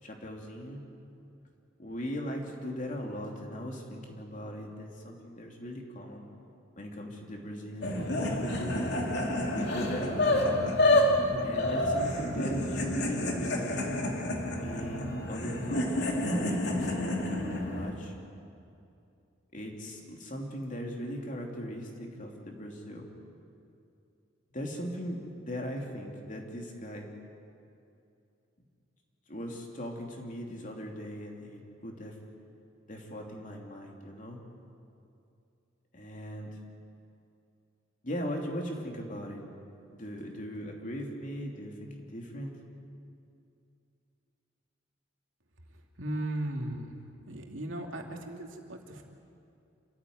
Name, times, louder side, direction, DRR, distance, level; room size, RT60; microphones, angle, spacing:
voice 1, 0.0-0.8 1.8-6.2 6.8-8.8 9.5-10.8 11.4-14.0 14.6-18.1 19.5-23.1 24.5-27.1 29.3-32.2 32.9-34.4 35.9-36.5 38.0-39.4 39.9-42.5, equal, 40° left, 1 dB, 3.1 m, -39 dB
sound 1, 7.8-17.9, left 1 dB, 60° left, 2.8 m, -29 dB
voice 2, 46.0-47.0 47.3-49.0, right 1 dB, 85° right, 1 dB, 2.7 m, -36 dB
27.5 x 14.0 x 9.5 m, 2.6 s
head